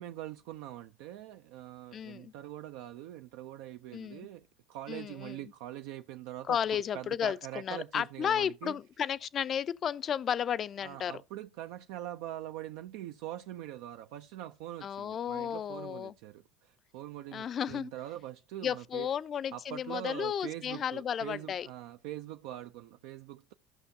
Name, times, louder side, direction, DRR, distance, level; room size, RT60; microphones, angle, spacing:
voice 1, 0.0-8.8 10.8-19.1 19.5-23.5, right 13 dB, 75° right, 0.4 m, -43 dB
voice 2, 1.9-2.3 3.9-4.3 4.9-5.4 6.5-11.1 14.8-16.1 17.3-17.9 18.6-21.7, left 8 dB, 45° left, 0.4 m, -33 dB
14.0 x 5.8 x 2.7 m
hypercardioid pair, 80°, 0 cm